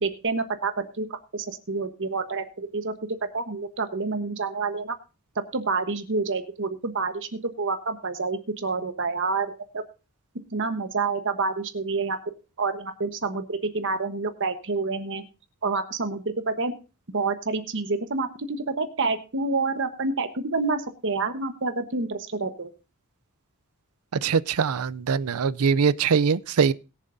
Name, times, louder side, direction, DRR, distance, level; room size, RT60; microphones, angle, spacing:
voice 1, 0.0-2.9 3.3-4.9 5.5-9.8 10.5-12.2 12.6-15.2 15.6-16.7 17.1-22.7, right 3 dB, 60° right, 1.2 m, -28 dB
voice 2, 24.1-26.7, right 6 dB, 85° right, 0.5 m, -22 dB
21.0 x 7.4 x 2.6 m
head